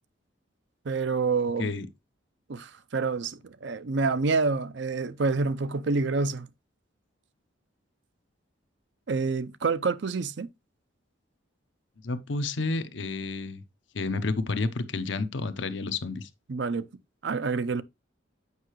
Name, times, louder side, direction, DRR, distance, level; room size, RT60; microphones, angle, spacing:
voice 1, 0.9-1.7 2.5-6.5 9.1-10.5 16.5-16.9 17.2-17.8, right 4 dB, 65° right, 0.5 m, -27 dB
voice 2, 12.0-13.6 13.9-16.3, left 3 dB, 70° left, 0.8 m, -30 dB
8.2 x 5.6 x 3.0 m
head